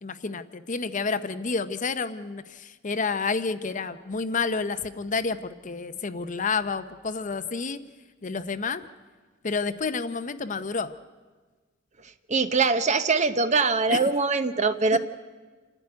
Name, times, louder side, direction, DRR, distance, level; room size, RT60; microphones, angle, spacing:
voice 1, 0.0-7.8 8.2-8.8 9.4-11.0 13.9-14.0, left 4 dB, 40° left, 11 dB, 0.7 m, -29 dB
voice 2, 12.3-15.0, right 4 dB, 35° right, 10 dB, 0.9 m, -22 dB
27.5 x 11.0 x 9.7 m, 1.4 s
head